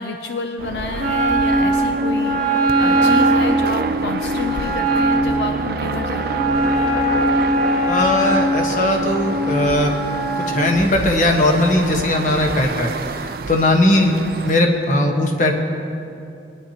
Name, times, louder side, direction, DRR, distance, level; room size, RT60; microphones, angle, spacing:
voice 1, 0.0-6.5 14.0-14.2, left 3 dB, 75° left, 5 dB, 0.5 m, -29 dB
sound 1, 0.6-14.5, right 3 dB, 55° right, 0.4 m, -27 dB
Wind instrument woodwind instrument, 1.0-10.6, right 1 dB, 5° left, 1.4 m, -20 dB
voice 2, 7.9-9.9 10.3-14.1 14.4-15.5, left 1 dB, 45° left, 1 dB, 1.2 m, -18 dB
21.0 x 10.5 x 2.9 m, 2.6 s
head